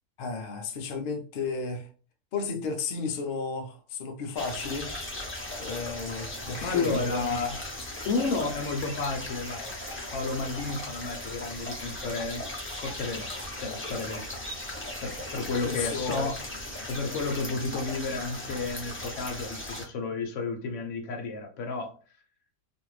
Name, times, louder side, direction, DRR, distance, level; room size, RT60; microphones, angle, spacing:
voice 1, 0.2-1.9 2.3-4.9 5.6-7.4 15.6-16.3, left 4 dB, 80° left, 0.4 m, -33 dB
sound 1, 4.4-19.8, left 1 dB, 20° left, 0.3 m, -38 dB
voice 2, 6.6-7.6 8.0-9.7 10.1-12.4 12.8-13.3 13.6-14.6 15.0-16.4 16.9-21.9, left 3 dB, 60° left, 0.9 m, -32 dB
2.7 x 2.5 x 3.0 m
omnidirectional pair, 1.6 m